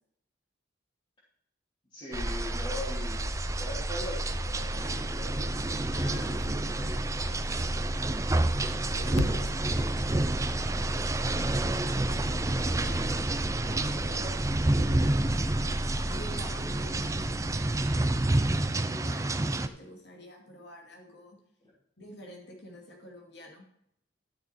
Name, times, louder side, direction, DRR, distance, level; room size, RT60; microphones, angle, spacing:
voice 1, 1.9-3.2 3.6-5.6 9.6-10.0 11.7-14.5, left 1 dB, 25° left, -10 dB, 3.4 m, -42 dB
sound 1, 2.1-18.6, equal, 10° left, 3.4 m, -35 dB
sound 2, 2.1-19.7, right 2 dB, 15° right, 0.4 m, -30 dB
voice 2, 5.9-8.5 8.9-10.2 14.6-15.2 16.1-21.4 22.0-23.7, equal, 55° left, 1 dB, 2.5 m, -47 dB
sound 3, 9.2-13.5, left 3 dB, 75° left, 0.7 m, -40 dB
12.5 x 6.7 x 4.4 m, 0.74 s
head